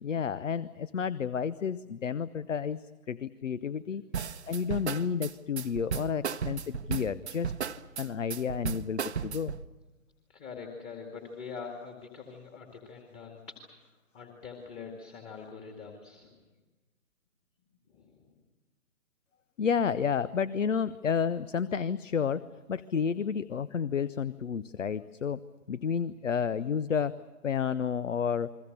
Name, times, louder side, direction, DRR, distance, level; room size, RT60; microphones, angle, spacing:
voice 1, 0.0-2.8 3.1-4.0 4.5-7.5 8.0-9.5 19.6-22.4 22.7-25.4 25.7-28.5, left 7 dB, 60° left, 18 dB, 0.8 m, -31 dB
sound 1, 4.1-9.6, right 7 dB, 50° right, 1.0 m, -34 dB
voice 2, 10.3-16.4 17.9-18.3, left 5 dB, 15° left, 3 dB, 2.2 m, -44 dB
29.5 x 22.5 x 6.7 m, 1.1 s
figure-of-eight pair, 140°, 42 cm